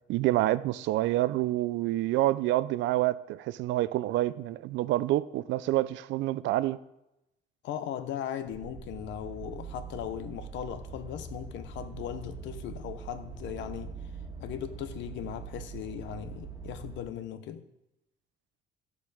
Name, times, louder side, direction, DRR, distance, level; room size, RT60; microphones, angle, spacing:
voice 1, 0.1-6.8, right 15 dB, 90° right, 0.5 m, -27 dB
voice 2, 7.6-14.0 14.4-17.6, left 10 dB, 85° left, 1.0 m, -38 dB
sound 1, 8.4-17.0, right 5 dB, 20° right, 1.6 m, -43 dB
13.5 x 7.2 x 5.0 m
cardioid pair, 145°, 19 cm